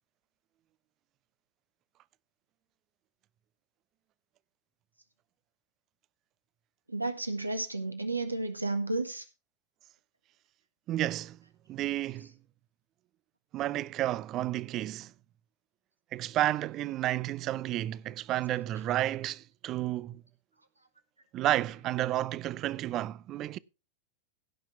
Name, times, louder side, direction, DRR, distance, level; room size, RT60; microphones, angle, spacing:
voice 1, 6.9-9.2, right 2 dB, 90° right, 1.7 m, -32 dB
voice 2, 10.9-11.4 11.7-12.3 13.5-15.1 16.1-20.2 21.3-23.6, right 14 dB, 40° right, 0.4 m, -31 dB
16.5 x 5.9 x 4.6 m
figure-of-eight pair, 90°, 0 cm